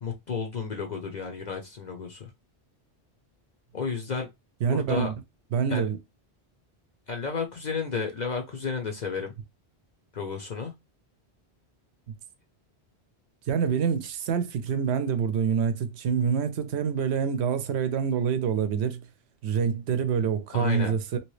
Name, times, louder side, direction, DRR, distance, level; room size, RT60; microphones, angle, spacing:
voice 1, 0.0-2.3 3.7-4.3 4.6-5.1 5.7-5.9 7.1-9.4 10.1-10.7 20.5-21.0, left 5 dB, 50° left, 0.6 m, -32 dB
voice 2, 4.6-5.1 5.5-6.0 13.5-19.0 19.4-21.2, right 7 dB, 75° right, 0.9 m, -26 dB
2.9 x 2.9 x 3.1 m
omnidirectional pair, 1.1 m